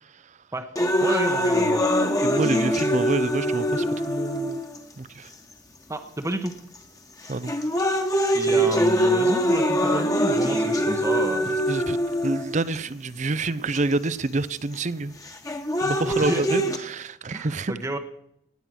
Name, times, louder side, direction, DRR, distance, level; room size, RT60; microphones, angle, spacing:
sound 1, 0.8-4.8 5.5-5.6 6.5-6.8 7.2-12.8 13.7-13.8 15.3-16.8, equal, 20° left, 1.5 m, -23 dB
voice 1, 1.0-1.8 5.9-6.5 8.3-11.5 16.0-16.5 16.8-16.9 17.3-18.0, right 1 dB, 15° right, 1.0 m, -30 dB
voice 2, 2.2-4.6 5.0-5.3 7.3-7.5 11.7-12.0 12.2-15.1 15.8-17.7, right 3 dB, 40° right, 0.6 m, -27 dB
18.5 x 9.8 x 6.2 m
head